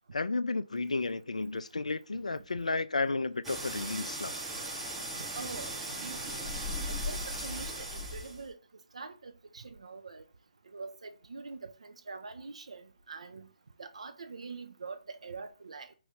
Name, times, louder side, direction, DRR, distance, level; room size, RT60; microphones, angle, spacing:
voice 1, 0.1-4.4, left 3 dB, 65° left, 0.3 m, -32 dB
sound 1, 3.4-8.5, equal, 5° right, 0.8 m, -37 dB
voice 2, 5.2-6.5 6.9-8.6 8.9-10.3 10.7-13.5 13.8-15.9, right 4 dB, 55° right, 0.6 m, -44 dB
5.1 x 2.6 x 3.5 m
figure-of-eight pair, 140°, 4 cm